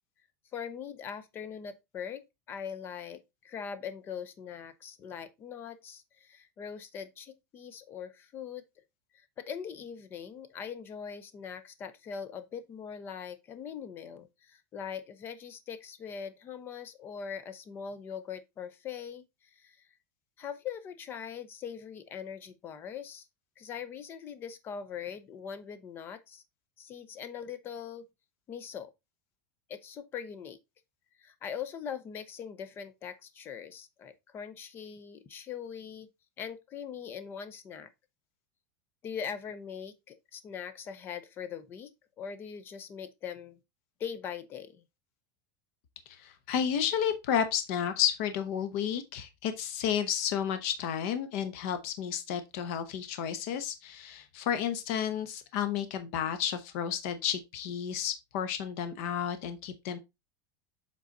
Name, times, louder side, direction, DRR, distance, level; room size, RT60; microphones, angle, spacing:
voice 1, 0.5-8.6 9.1-19.2 19.5-19.9 20.4-23.3 23.6-26.4 26.8-28.0 28.5-28.9 29.7-30.6 31.2-36.1 36.4-37.9 39.0-41.9 42.2-43.6 44.0-44.8, left 7 dB, 20° left, 0.7 m, -41 dB
voice 2, 46.1-60.0, left 9 dB, 50° left, 0.9 m, -32 dB
7.5 x 3.9 x 4.0 m
supercardioid pair, 175°, 10 cm